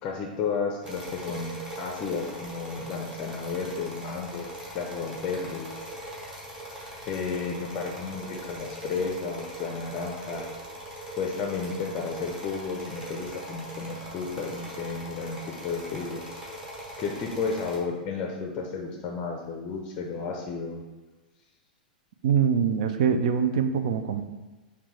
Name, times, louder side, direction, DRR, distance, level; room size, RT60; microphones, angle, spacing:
voice 1, 0.0-5.8 7.1-10.5 11.1-16.2 17.0-20.8, left 5 dB, 30° left, 1 dB, 0.5 m, -33 dB
sound 1, 0.8-17.8, right 1 dB, 15° right, 0.9 m, -40 dB
voice 2, 22.2-24.2, right 7 dB, 55° right, 9 dB, 0.3 m, -23 dB
5.8 x 2.2 x 3.2 m, 1.2 s
figure-of-eight pair, 95°, 5 cm